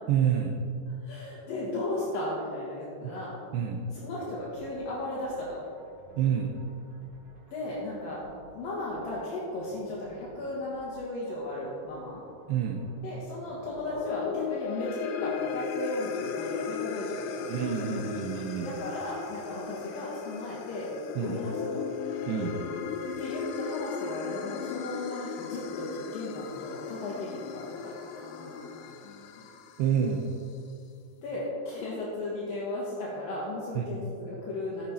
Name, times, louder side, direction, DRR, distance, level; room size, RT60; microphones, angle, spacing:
voice 1, 0.1-0.6 3.0-3.1 3.5-3.9 6.2-6.6 12.5-12.9 17.5-18.8 21.2-21.4 22.3-22.6 29.8-30.3 33.8-33.9, right 8 dB, 85° right, 2 dB, 2.4 m, -28 dB
voice 2, 1.0-3.3 4.0-5.6 7.5-8.2 8.5-12.2 13.0-18.0 18.6-20.9 21.2-21.8 23.2-29.2 31.2-34.9, left 1 dB, 60° left, -7 dB, 2.7 m, -36 dB
sound 1, 4.0-14.1, right 2 dB, 55° right, 4.2 m, -55 dB
sound 2, 13.6-30.1, left 6 dB, 85° left, 3.2 m, -36 dB
13.5 x 9.1 x 4.3 m, 2.4 s
omnidirectional pair, 5.7 m